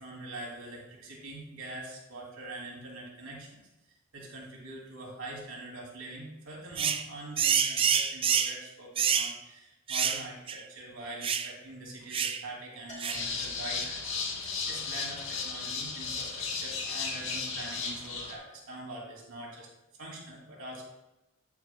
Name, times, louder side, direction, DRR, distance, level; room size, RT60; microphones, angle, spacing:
voice 1, 0.0-3.7 4.1-14.1 14.4-19.7 20.0-20.8, right 1 dB, 75° right, -2 dB, 2.9 m, -44 dB
sound 1, 6.8-7.0 7.4-8.6 9.0-9.3 9.9-10.2 10.5-10.6 11.2-11.5 12.1-12.4 13.0-13.3, right 7 dB, 25° right, 0.4 m, -27 dB
Bell, 12.9-14.2, left 1 dB, 35° left, 2.6 m, -52 dB
sound 2, 13.1-18.3, left 4 dB, 60° left, 1.4 m, -35 dB
10.5 x 9.7 x 2.2 m, 0.96 s
head